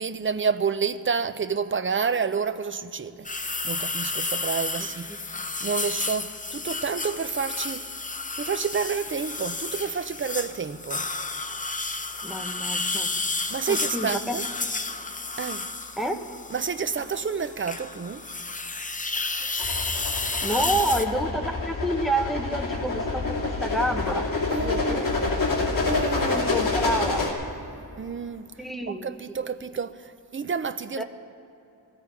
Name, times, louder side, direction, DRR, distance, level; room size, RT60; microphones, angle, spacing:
voice 1, 0.0-3.3 3.6-5.1 5.6-7.8 8.4-11.1 13.5-14.4 15.4-15.7 16.5-18.2 24.5-25.1 25.9-26.5 28.0-28.5 28.9-30.0 30.3-31.0, right 6 dB, 35° right, 0.5 m, -29 dB
sound 1, 3.2-21.0, left 3 dB, 20° left, 0.6 m, -31 dB
voice 2, 12.2-13.1 13.7-14.4 16.0-16.2 20.4-24.3 24.6-25.3 26.3-27.2 28.6-29.1 31.0-31.1, right 1 dB, ahead, 1.1 m, -28 dB
sound 2, 19.6-27.3, left 3 dB, 55° left, 2.3 m, -27 dB
16.0 x 15.5 x 4.8 m
wide cardioid pair, 115°, 38 cm